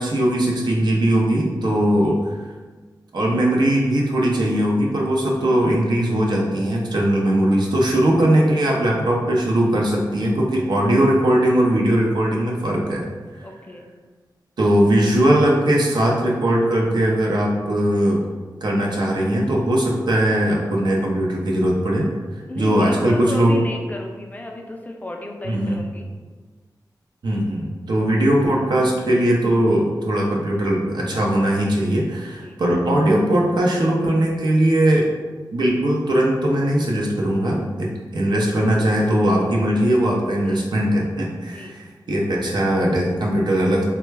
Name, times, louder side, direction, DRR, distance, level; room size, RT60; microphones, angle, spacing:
voice 1, 0.0-2.3 3.1-13.1 14.6-18.2 18.6-23.6 25.4-25.8 27.2-35.1 35.5-43.8, right 1 dB, 80° right, -2 dB, 0.6 m, -19 dB
voice 2, 13.4-13.9 22.5-26.1 32.2-32.9 38.3-38.7 40.4-40.7 41.4-41.8, left 1 dB, 20° left, 1 dB, 0.4 m, -35 dB
3.2 x 2.1 x 3.2 m, 1.4 s
wide cardioid pair, 90°, 7 cm